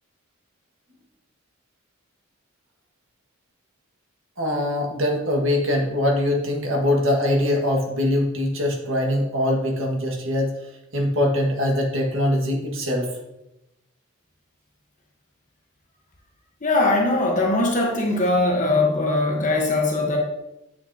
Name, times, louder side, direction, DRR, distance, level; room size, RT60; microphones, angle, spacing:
voice 1, 4.4-10.6 10.9-13.1, left 1 dB, 65° right, 1 dB, 1.7 m, -22 dB
voice 2, 16.6-20.2, left 2 dB, 35° left, 0 dB, 1.1 m, -21 dB
8.4 x 6.6 x 2.8 m, 0.90 s
head